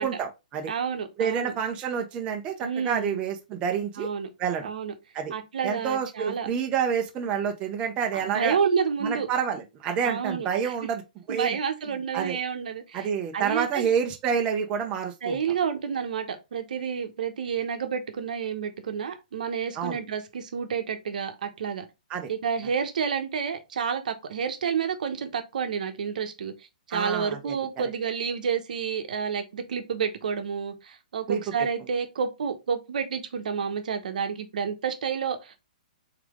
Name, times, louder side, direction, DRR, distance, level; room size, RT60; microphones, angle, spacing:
voice 1, 0.0-0.7 1.2-4.1 4.4-4.7 5.1-5.3 5.6-8.6 9.0-11.0 11.3-11.6 12.1-12.4 12.9-15.4 19.8-20.0 22.1-22.3 26.9-27.5 31.3-31.4, right 7 dB, 25° right, 0.7 m, -28 dB
voice 2, 0.7-1.5 2.6-3.2 4.0-4.3 4.6-4.9 5.3-6.5 8.1-9.3 10.0-10.7 11.3-13.1 13.3-13.9 15.2-21.8 22.3-26.5 26.9-35.6, right 6 dB, 70° right, 0.9 m, -29 dB
3.7 x 3.4 x 3.6 m
hypercardioid pair, 140°, 4 cm